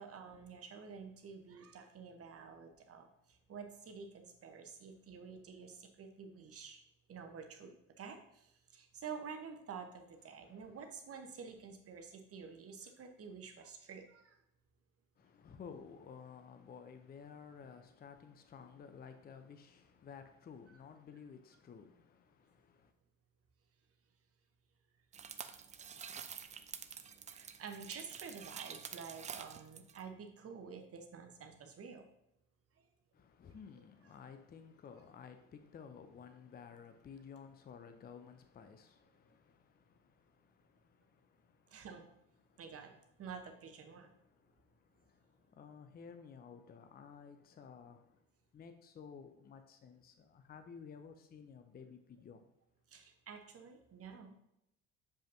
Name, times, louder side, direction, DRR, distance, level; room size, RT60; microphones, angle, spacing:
voice 1, 0.0-3.1 3.5-6.8 7.1-14.4 27.3-32.0 41.7-42.0 42.6-42.9 43.2-44.1 52.9-54.3, right 6 dB, 40° right, 5 dB, 1.0 m, -49 dB
voice 2, 10.3-10.8 15.2-22.9 33.1-40.0 40.8-40.9 45.5-48.0 48.5-52.5, left 6 dB, 25° left, 8 dB, 0.6 m, -54 dB
sound 1, 25.1-30.0, right 7 dB, 20° right, 0.4 m, -48 dB
7.1 x 5.1 x 2.7 m, 0.81 s
figure-of-eight pair, 55°, 38 cm